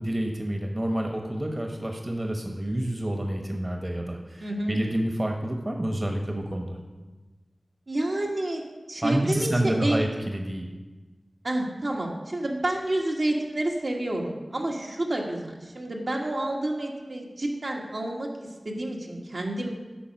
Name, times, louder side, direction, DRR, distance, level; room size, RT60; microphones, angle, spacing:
voice 1, 0.0-6.8 9.0-10.7, right 1 dB, 35° right, 2 dB, 1.1 m, -28 dB
voice 2, 4.4-4.8 7.9-8.6 8.9-10.0 11.4-19.7, right 1 dB, 75° right, -2 dB, 1.5 m, -29 dB
8.7 x 5.3 x 6.4 m, 1.2 s
wide cardioid pair, 45°, 0 cm